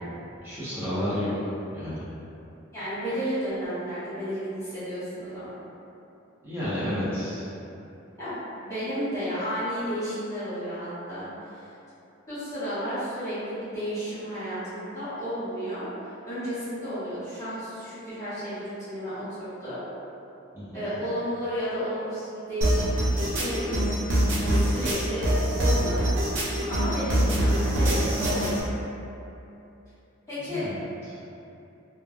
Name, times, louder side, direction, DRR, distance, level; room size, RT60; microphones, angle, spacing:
voice 1, 0.4-1.3 1.7-2.0 6.4-7.4 20.5-20.9 30.5-30.8, equal, 10° right, -12 dB, 0.7 m, -31 dB
voice 2, 2.7-5.6 8.2-11.6 12.3-15.9 16.2-19.8 20.7-23.9 24.4-26.1 26.4-28.5 30.3-30.6, equal, 15° left, -14 dB, 1.3 m, -32 dB
sound 1, 22.6-28.6, right 1 dB, 75° right, 0.5 m, -24 dB
3.2 x 2.1 x 2.2 m, 2.8 s
head